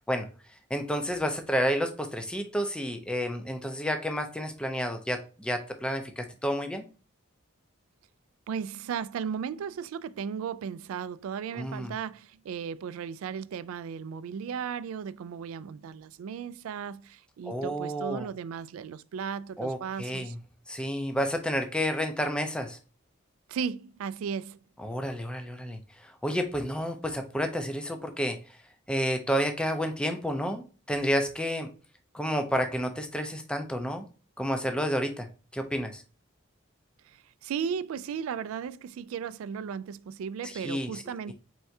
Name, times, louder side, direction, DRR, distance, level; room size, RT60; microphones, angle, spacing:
voice 1, 0.7-6.9 11.5-11.9 17.4-18.3 19.6-20.4 20.7-22.8 24.8-28.6 28.9-31.7 32.1-34.1 34.4-35.3 35.5-36.0 40.4-41.0 41.3-41.4, equal, 5° left, 0.5 m, -30 dB
voice 2, 8.5-20.3 23.5-24.6 37.1-41.3, right 7 dB, 85° right, 0.3 m, -35 dB
4.5 x 3.4 x 2.6 m
head